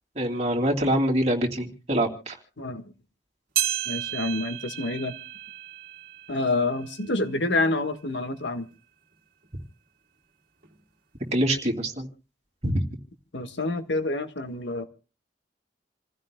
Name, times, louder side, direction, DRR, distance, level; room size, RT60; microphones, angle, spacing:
voice 1, 0.2-2.3 11.3-12.1 12.6-12.8, right 1 dB, 40° right, 0 dB, 2.6 m, -25 dB
sound 1, 3.6-8.2 8.7-8.8 9.6-9.7 10.6-10.7, right 11 dB, 55° right, 2.0 m, -33 dB
voice 2, 3.8-5.1 6.3-8.6 13.3-14.8, left 2 dB, 85° left, 8 dB, 1.5 m, -27 dB
28.5 x 15.5 x 2.2 m, 0.34 s
head